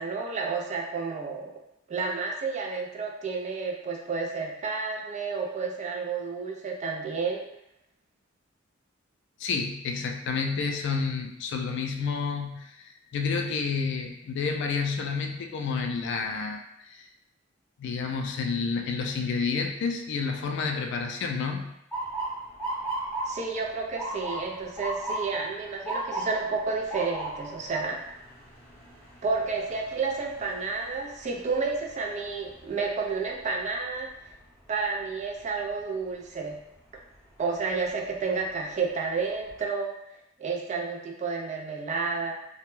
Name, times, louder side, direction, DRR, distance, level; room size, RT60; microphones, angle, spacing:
voice 1, 0.0-1.5 1.9-7.4 23.3-28.0 29.2-34.1 34.7-36.6 37.4-39.9 40.4-42.3, right 4 dB, 35° right, 0 dB, 0.3 m, -31 dB
voice 2, 9.4-16.6 16.9-17.1 17.8-21.7, left 5 dB, 60° left, 3 dB, 0.3 m, -30 dB
Motor vehicle (road) / Siren, 21.9-33.8 34.2-34.7 35.5-35.8 37.6-37.9 38.4-38.5 38.9-39.6, right 1 dB, 10° left, 0.8 m, -37 dB
2.2 x 2.0 x 3.0 m, 0.81 s
head